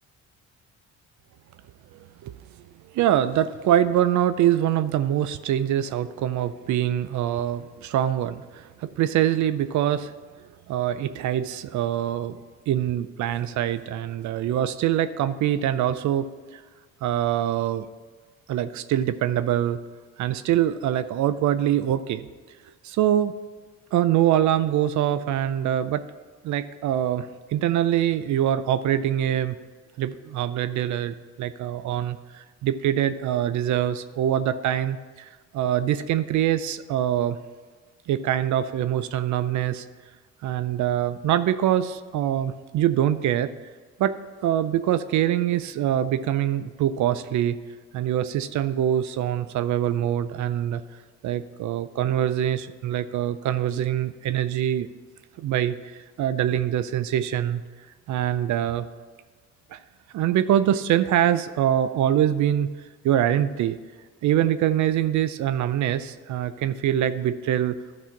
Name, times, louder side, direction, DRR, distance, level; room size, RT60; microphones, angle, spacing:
voice 1, 2.9-10.1 10.7-12.4 12.7-16.6 17.0-17.9 18.5-19.8 20.2-22.3 22.8-23.3 23.9-26.1 26.4-29.6 30.0-37.4 38.1-39.9 40.4-43.5 44.0-47.6 47.9-50.8 51.2-54.9 55.4-55.8 56.2-57.6 58.1-58.9 59.7-59.8 60.1-62.7 63.0-63.8 64.2-67.8, right 11 dB, 70° right, 13 dB, 0.5 m, -24 dB
12.0 x 4.2 x 5.8 m, 1.5 s
cardioid pair, 90°, 30 cm